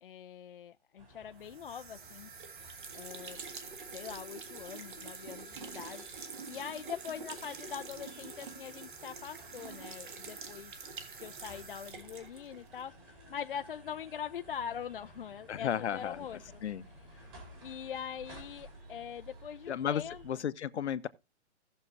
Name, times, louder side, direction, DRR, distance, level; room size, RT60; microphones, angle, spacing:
voice 1, 0.0-2.3 2.9-3.4 3.9-6.1 6.5-10.8 11.2-16.6 17.6-20.4, left 8 dB, 50° left, 0.4 m, -43 dB
sound 1, 1.0-20.3, right 1 dB, 20° right, 2.4 m, -55 dB
sound 2, 1.4-12.9, right 5 dB, 45° right, 1.6 m, -46 dB
voice 2, 15.5-16.2 16.6-16.8 19.7-21.1, left 9 dB, 70° left, 0.8 m, -33 dB
17.5 x 6.5 x 2.7 m
hypercardioid pair, 170°, 35 cm